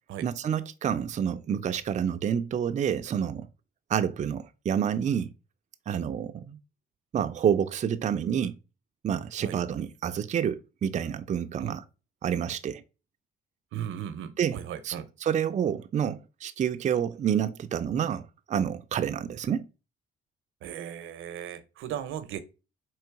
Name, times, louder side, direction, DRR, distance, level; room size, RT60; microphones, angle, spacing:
voice 1, 0.2-3.5 3.9-5.3 5.9-6.6 7.1-8.6 9.0-11.8 12.2-12.8 14.4-14.9 15.2-19.6, right 8 dB, 35° right, 0.4 m, -28 dB
voice 2, 13.7-15.1 20.6-22.4, right 10 dB, 80° right, 0.7 m, -37 dB
3.9 x 3.0 x 4.6 m
cardioid pair, 90°, 20 cm